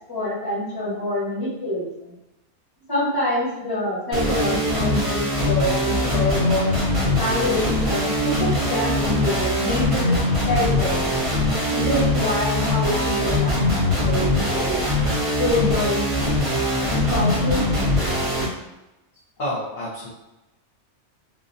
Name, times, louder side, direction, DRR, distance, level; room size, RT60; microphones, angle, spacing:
voice 1, 0.1-1.9 2.9-6.7 7.1-10.2 10.4-11.1 11.7-14.9 15.4-16.1 16.9-17.6, left 1 dB, 20° left, -8 dB, 1.0 m, -26 dB
sound 1, 4.1-18.4, left 1 dB, 40° right, 0.5 m, -22 dB
voice 2, 19.4-20.1, left 1 dB, 50° left, -8 dB, 0.6 m, -28 dB
2.3 x 2.1 x 2.6 m, 0.99 s
omnidirectional pair, 1.3 m